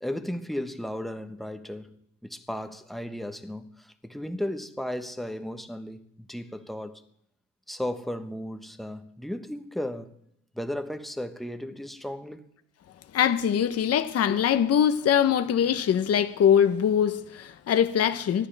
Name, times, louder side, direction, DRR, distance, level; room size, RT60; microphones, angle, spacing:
voice 1, 0.0-1.9 2.2-7.0 7.7-10.1 10.5-12.5, left 1 dB, ahead, 1.1 m, -35 dB
voice 2, 13.1-18.5, left 9 dB, 55° left, 0.9 m, -22 dB
25.5 x 9.8 x 3.4 m
cardioid pair, 90°, 30 cm